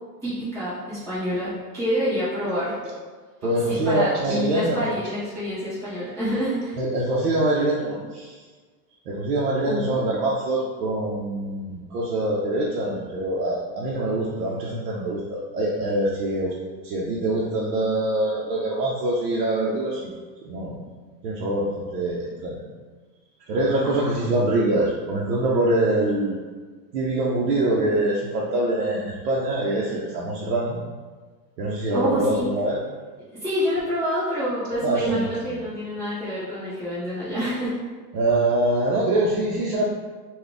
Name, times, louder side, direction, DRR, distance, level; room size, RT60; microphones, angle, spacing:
voice 1, 0.2-2.8 3.7-6.8 9.6-10.0 23.8-24.2 31.9-32.4 33.3-37.7, equal, 5° right, -18 dB, 0.5 m, -27 dB
voice 2, 3.4-4.9 6.8-8.4 9.1-16.5 16.8-20.1 20.4-20.8 21.2-22.6 23.5-26.4 26.9-30.8 31.6-32.8 34.8-35.6 38.1-39.9, right 1 dB, 65° right, -5 dB, 0.7 m, -24 dB
3.9 x 2.3 x 3.4 m, 1.4 s
supercardioid pair, 165°, 50 cm